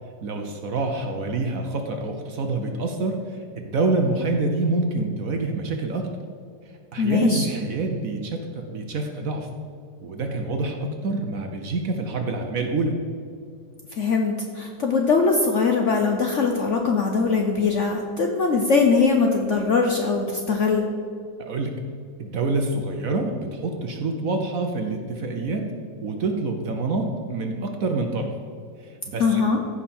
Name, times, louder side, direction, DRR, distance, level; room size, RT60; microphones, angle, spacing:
voice 1, 0.2-3.2 3.5-6.1 6.9-9.5 10.0-12.9 21.4-21.7 22.2-25.7 26.0-28.3 29.1-29.5, right 3 dB, 55° right, 4 dB, 1.1 m, -26 dB
voice 2, 7.0-7.4 14.0-20.8 29.2-29.6, left 4 dB, 55° left, 2 dB, 0.8 m, -21 dB
15.0 x 5.5 x 4.4 m, 2.3 s
omnidirectional pair, 2.0 m